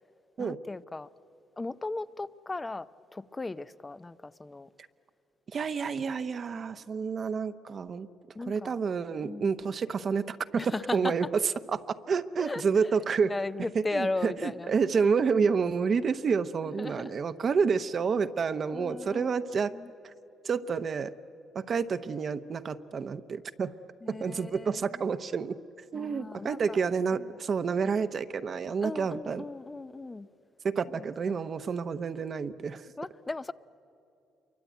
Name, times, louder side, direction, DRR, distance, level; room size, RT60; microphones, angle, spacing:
voice 1, 0.4-1.1 1.6-4.7 8.3-8.8 9.2-9.5 10.6-11.1 12.4-12.6 13.2-14.7 16.6-17.1 18.7-19.3 19.7-19.9 24.0-25.0 25.9-26.8 27.1-27.4 28.8-30.3 30.9-31.4 33.0-33.5, left 2 dB, 20° left, 0.6 m, -37 dB
voice 2, 5.5-8.1 8.5-10.4 10.6-13.3 13.7-19.7 20.4-21.1 21.5-23.7 24.1-25.6 25.9-29.4 30.6-32.9, right 5 dB, 50° right, 0.8 m, -29 dB
27.5 x 23.5 x 9.2 m
cardioid pair, 90°, 0 cm